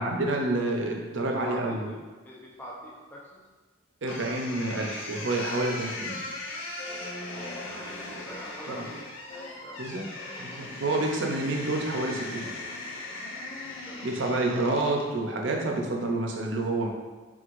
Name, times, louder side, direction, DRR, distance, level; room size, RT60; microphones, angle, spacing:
voice 1, 0.0-1.9 4.0-6.2 8.7-8.9 9.8-10.0 10.4-12.5 14.0-16.9, right 2 dB, 65° right, 1 dB, 0.6 m, -28 dB
voice 2, 1.2-1.9 2.2-3.5 4.2-4.6 7.3-9.2 9.5-10.0 13.8-14.1, equal, 10° left, -5 dB, 0.5 m, -44 dB
sound 1, 4.1-15.1, left 2 dB, 85° left, 0.7 m, -38 dB
4.8 x 3.7 x 2.5 m, 1.3 s
head